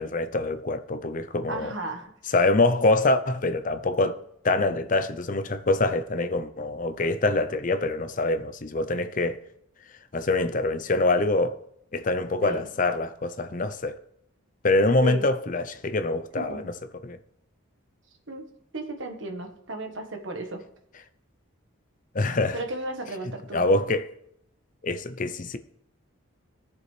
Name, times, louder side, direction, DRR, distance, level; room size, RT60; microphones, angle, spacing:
voice 1, 0.0-1.7 2.3-9.4 10.1-11.6 11.9-14.0 14.6-16.7 17.0-17.2 22.1-22.6 23.5-24.1 24.8-25.6, left 2 dB, 40° left, 0.6 m, -25 dB
voice 2, 1.5-2.1 12.4-12.7 15.0-15.2 16.4-16.6 18.3-18.4 18.7-20.6 22.5-23.6, right 2 dB, 60° right, 1.4 m, -34 dB
17.0 x 7.0 x 3.3 m
head